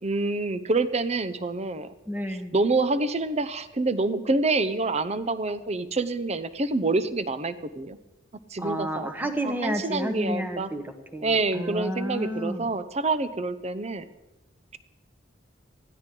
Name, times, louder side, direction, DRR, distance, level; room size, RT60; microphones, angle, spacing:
voice 1, 0.0-1.9 2.5-8.0 8.5-9.1 9.4-10.7 11.2-14.1, right 3 dB, 35° right, 12 dB, 0.8 m, -27 dB
voice 2, 2.1-2.5 8.6-12.7, equal, 10° right, 6 dB, 1.3 m, -31 dB
19.5 x 14.5 x 3.9 m, 1.0 s
head